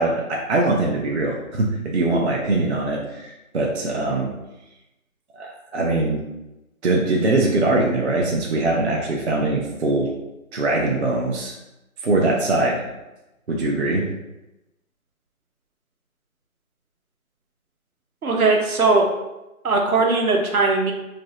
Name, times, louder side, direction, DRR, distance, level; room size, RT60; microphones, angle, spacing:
voice 1, 0.0-4.3 5.4-6.2 6.8-10.1 10.5-11.5 12.0-12.9 13.5-14.0, right 2 dB, 55° right, -2 dB, 0.5 m, -22 dB
voice 2, 18.2-19.1 19.6-20.9, right 3 dB, 80° right, 1 dB, 0.8 m, -19 dB
2.6 x 2.1 x 3.7 m, 0.97 s
figure-of-eight pair, 165°, 42 cm